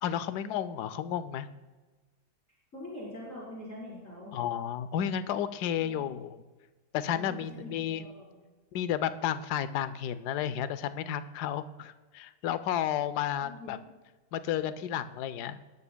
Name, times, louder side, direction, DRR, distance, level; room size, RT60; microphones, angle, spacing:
voice 1, 0.0-1.5 4.3-6.4 6.9-8.0 8.7-13.8 14.3-15.6, left 10 dB, 75° left, 13 dB, 1.2 m, -32 dB
voice 2, 2.7-4.3 5.8-6.1 7.1-8.4 13.4-13.9, left 1 dB, 50° left, -6 dB, 4.4 m, -44 dB
18.0 x 12.0 x 2.2 m, 1.3 s
omnidirectional pair, 1.8 m